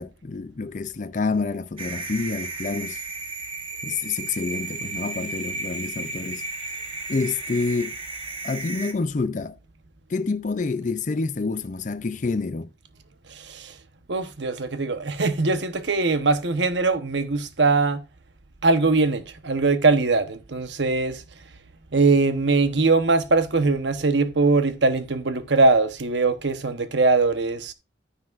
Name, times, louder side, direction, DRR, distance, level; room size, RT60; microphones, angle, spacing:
voice 1, 0.0-3.0 3.8-6.4 7.1-8.0 8.4-9.6 10.1-12.7, left 4 dB, 45° left, 0.5 m, -28 dB
sound 1, 1.8-8.9, right 3 dB, 30° right, 1.2 m, -34 dB
voice 2, 13.3-13.8 14.1-18.0 18.6-21.2 21.9-27.7, right 3 dB, 80° right, 1.0 m, -21 dB
9.8 x 9.6 x 2.5 m
head